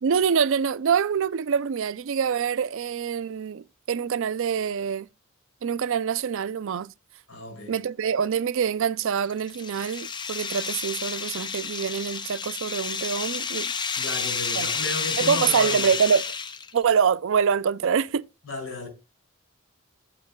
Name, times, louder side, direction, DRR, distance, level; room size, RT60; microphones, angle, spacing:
voice 1, 0.0-5.1 5.6-6.9 7.7-13.7 14.6-14.7 15.2-16.2 16.7-18.2, right 7 dB, 65° right, 0.4 m, -25 dB
voice 2, 7.3-7.7 14.0-15.9 18.5-18.9, left 2 dB, 75° left, 5.5 m, -34 dB
sound 1, 9.0-16.8, left 5 dB, 20° left, 0.5 m, -30 dB
15.0 x 7.4 x 2.2 m
head